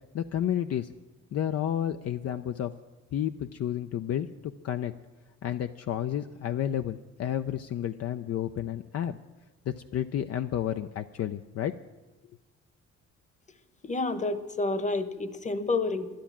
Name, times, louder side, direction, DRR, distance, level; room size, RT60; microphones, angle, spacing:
voice 1, 0.1-0.9 1.3-2.7 3.1-4.3 4.6-4.9 5.4-9.2 9.7-11.7, left 10 dB, 55° left, 8 dB, 0.5 m, -31 dB
voice 2, 13.8-16.1, left 3 dB, 25° left, 12 dB, 1.0 m, -29 dB
11.5 x 11.5 x 7.3 m, 1.2 s
cardioid pair, 90°, 30 cm